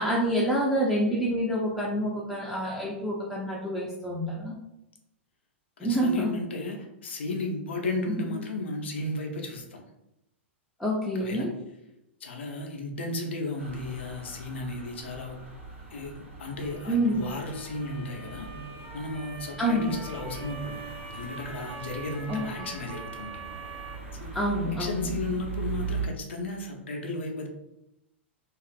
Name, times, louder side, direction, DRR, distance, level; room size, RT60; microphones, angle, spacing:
voice 1, 0.0-4.5 5.8-6.3 8.1-8.4 10.8-11.5 16.9-17.3 19.6-19.9 22.3-22.7 24.3-25.1, equal, ahead, -6 dB, 0.4 m, -27 dB
voice 2, 5.8-9.8 11.2-11.5 12.2-15.4 15.9-18.5 18.9-20.8 21.1-23.5 24.2-24.3 24.8-27.5, left 2 dB, 70° left, 2 dB, 0.5 m, -34 dB
sound 1, 13.6-26.1, right 4 dB, 75° right, 0.8 m, -40 dB
Motor vehicle (road) / Siren, 16.5-24.0, right 4 dB, 45° right, 1.1 m, -44 dB
2.4 x 2.4 x 2.4 m, 0.86 s
figure-of-eight pair, 100°, 7 cm